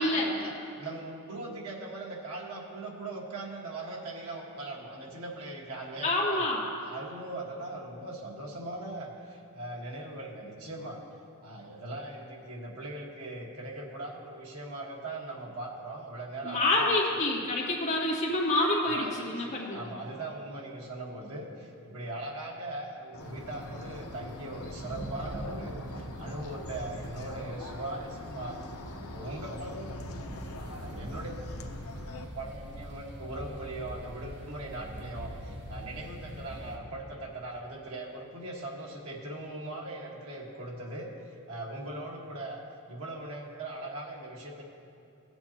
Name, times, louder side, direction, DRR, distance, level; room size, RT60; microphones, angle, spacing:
voice 1, 0.0-6.5 6.8-11.0 11.4-17.0 18.9-28.6 29.1-30.4 30.7-31.4 32.3-41.1 41.5-44.6, right 2 dB, 85° right, -1 dB, 1.6 m, -40 dB
voice 2, 6.0-6.6 16.4-19.9, left 2 dB, 35° left, -3 dB, 1.7 m, -27 dB
sound 1, 23.1-32.2, left 2 dB, 80° left, 0.7 m, -44 dB
sound 2, 23.2-36.8, right 1 dB, 50° right, 1.1 m, -43 dB
17.0 x 7.9 x 2.9 m, 2.6 s
head